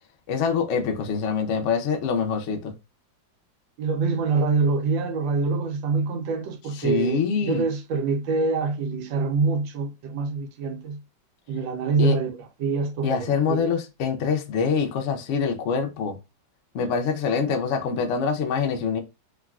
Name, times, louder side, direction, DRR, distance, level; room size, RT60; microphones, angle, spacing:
voice 1, 0.3-2.7 6.7-7.7 12.0-12.2 13.0-16.2 16.7-19.0, left 6 dB, 75° left, 0.6 m, -25 dB
voice 2, 3.8-11.0 11.5-13.7, right 4 dB, 90° right, 1.4 m, -25 dB
3.5 x 2.3 x 2.3 m
omnidirectional pair, 2.0 m